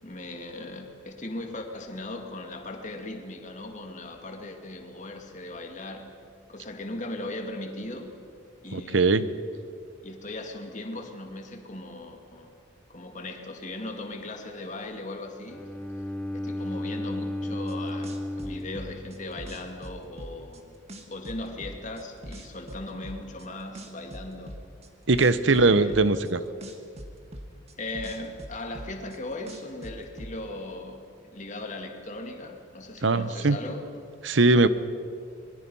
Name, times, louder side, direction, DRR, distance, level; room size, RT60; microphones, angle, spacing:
voice 1, 0.0-6.1 6.5-8.1 8.6-9.3 10.0-12.5 12.9-15.7 16.3-20.7 21.1-24.6 25.5-26.3 27.8-31.0 31.3-34.1, left 2 dB, 40° left, 4 dB, 2.3 m, -38 dB
voice 2, 8.7-9.2 25.1-26.4 33.0-33.6 34.2-34.7, right 3 dB, 65° right, 14 dB, 0.9 m, -20 dB
Bowed string instrument, 15.5-19.6, left 1 dB, 5° left, 0.6 m, -34 dB
sound 1, 17.7-17.8 18.0-20.6 20.9-23.4 23.7-26.3 26.6-29.2 29.5-30.3, equal, 35° right, 1.8 m, -41 dB
26.0 x 22.0 x 5.6 m, 2.4 s
head